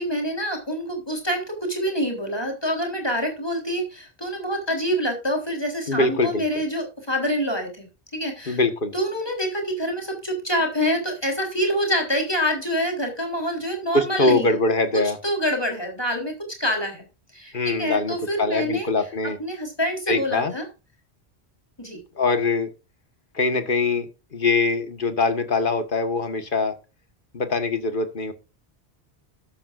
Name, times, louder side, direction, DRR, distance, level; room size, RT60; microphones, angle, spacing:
voice 1, 0.0-7.9 8.1-8.6 8.9-14.5 14.9-16.3 16.6-17.1 17.3-18.9 19.4-20.6 21.8-22.0, equal, 25° left, 2 dB, 4.0 m, -26 dB
voice 2, 5.9-6.4 8.5-8.9 13.9-15.2 17.5-19.4 20.1-20.5 22.2-22.7 23.3-26.8 27.3-28.3, left 3 dB, 50° left, 9 dB, 1.8 m, -23 dB
13.0 x 12.5 x 2.6 m, 0.30 s
omnidirectional pair, 1.1 m